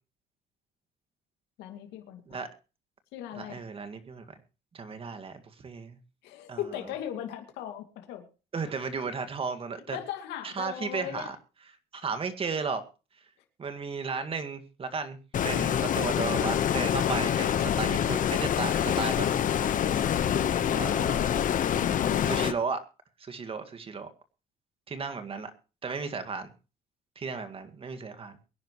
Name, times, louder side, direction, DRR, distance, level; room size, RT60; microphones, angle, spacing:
voice 1, 1.6-2.4 3.1-3.6 6.2-8.3 9.9-11.3 21.8-22.4, left 11 dB, 90° left, 4 dB, 2.5 m, -37 dB
voice 2, 3.4-4.4 4.7-6.0 6.5-6.6 8.5-10.0 10.4-11.4 11.9-12.8 13.6-15.2 15.4-19.3 20.7-21.4 22.3-22.8 23.2-24.1 24.9-25.5 25.8-26.5 27.2-28.4, right 5 dB, 35° right, 9 dB, 2.0 m, -34 dB
Stream, 15.3-22.5, left 9 dB, 50° left, 1.2 m, -26 dB
23.5 x 10.5 x 3.2 m, 0.33 s
cardioid pair, 110°, 17 cm